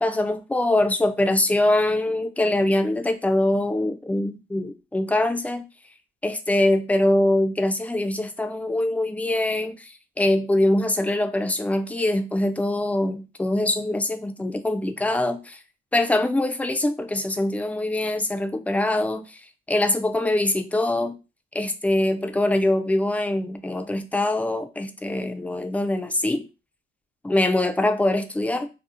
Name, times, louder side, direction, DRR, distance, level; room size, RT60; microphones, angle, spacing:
voice 1, 0.0-5.6 6.2-15.6 15.9-19.4 19.7-21.1 21.5-26.5 27.2-28.7, left 1 dB, 5° left, 0.3 m, -23 dB
2.7 x 2.0 x 2.5 m
cardioid pair, 90°, 20 cm